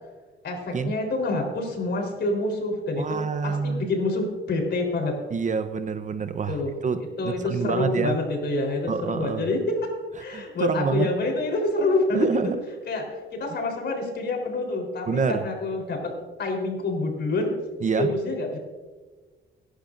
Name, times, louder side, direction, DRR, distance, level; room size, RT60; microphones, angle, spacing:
voice 1, 0.4-5.2 6.5-6.7 7.2-9.9 10.2-12.5 12.9-16.1 16.4-17.5 18.0-18.6, left 2 dB, 60° left, 2 dB, 4.0 m, -27 dB
voice 2, 3.0-3.9 5.3-8.2 8.9-9.4 10.3-11.1 12.1-12.6 15.1-15.4 17.8-18.1, right 5 dB, 40° right, 10 dB, 0.8 m, -27 dB
24.0 x 11.5 x 2.6 m, 1.3 s
cardioid pair, 90°, 20 cm